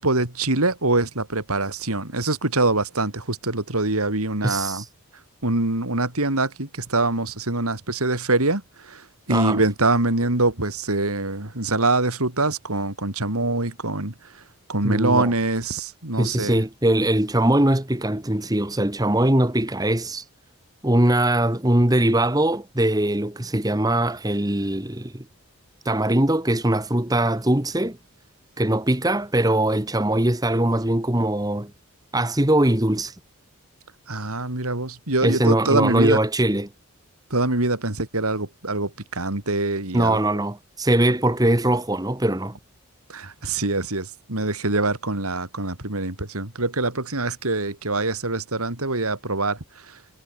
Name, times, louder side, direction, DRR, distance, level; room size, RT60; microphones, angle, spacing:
voice 1, 0.0-4.8 5.4-14.4 14.7-16.6 34.1-36.2 37.3-40.2 43.1-49.6 49.9-50.0, right 2 dB, 80° right, 3.8 m, -24 dB
voice 2, 4.4-4.8 9.3-9.6 14.8-15.3 16.2-20.2 20.8-25.2 25.8-28.0 28.6-31.7 32.1-33.1 35.2-36.7 39.9-42.6, right 1 dB, 15° right, 1.4 m, -21 dB
head